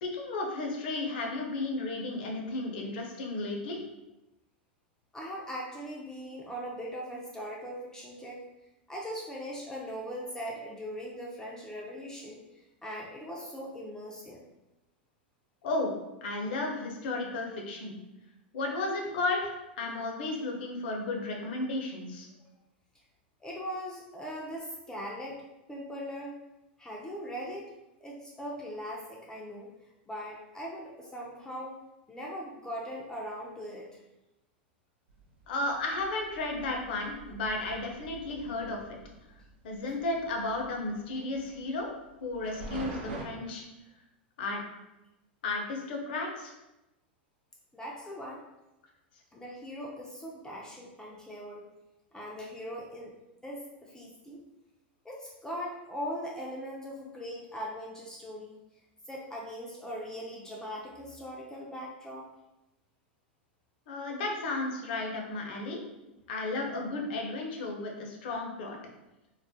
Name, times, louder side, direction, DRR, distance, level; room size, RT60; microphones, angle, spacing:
voice 1, 0.0-3.8 15.6-15.9 16.2-18.0 18.5-22.3 35.5-38.8 39.6-41.9 42.2-43.6 44.4-44.6 45.4-46.5 63.9-65.8 66.3-68.8, left 2 dB, 65° left, 1 dB, 0.6 m, -33 dB
voice 2, 5.1-8.4 8.9-14.4 23.4-25.4 25.7-26.4 26.8-27.7 28.0-29.7 30.1-31.8 32.1-34.0 47.7-48.4 49.3-51.6 52.1-53.1 53.4-54.4 55.0-58.6 59.1-62.3, equal, 10° left, -3 dB, 0.4 m, -40 dB
sound 1, 35.1-43.3, right 2 dB, 75° right, 0.4 m, -46 dB
2.3 x 2.0 x 2.6 m, 0.95 s
hypercardioid pair, 105°, 6 cm